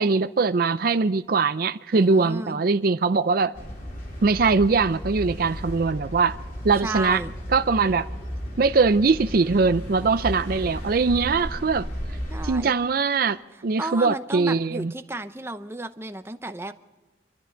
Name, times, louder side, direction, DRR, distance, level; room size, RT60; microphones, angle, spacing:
voice 1, 0.0-3.5 4.2-6.4 6.6-7.2 7.5-8.1 8.6-11.9 12.4-14.9, right 4 dB, 55° right, 0.5 m, -21 dB
voice 2, 1.9-2.6 6.8-7.3 12.3-12.7 13.8-16.7, right 2 dB, 15° right, 0.7 m, -33 dB
sound 1, 3.5-12.5, equal, 50° left, 3.7 m, -34 dB
26.0 x 13.5 x 3.9 m
head